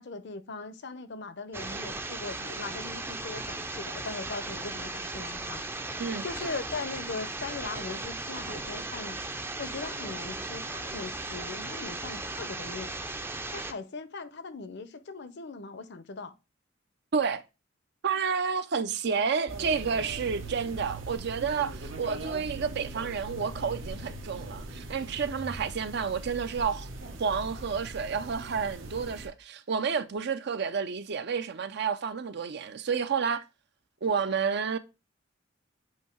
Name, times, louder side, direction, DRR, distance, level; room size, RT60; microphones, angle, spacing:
voice 1, 0.0-5.6 6.2-9.2 9.6-13.0 13.5-16.3, left 3 dB, 60° left, 0.7 m, -39 dB
sound 1, 1.5-13.7, right 2 dB, 10° right, 0.5 m, -37 dB
voice 2, 17.1-17.4 18.0-26.9 27.2-33.4 34.0-34.8, right 6 dB, 60° right, 0.5 m, -30 dB
sound 2, 19.5-29.3, right 2 dB, 80° right, 1.2 m, -41 dB
8.0 x 2.8 x 4.5 m
head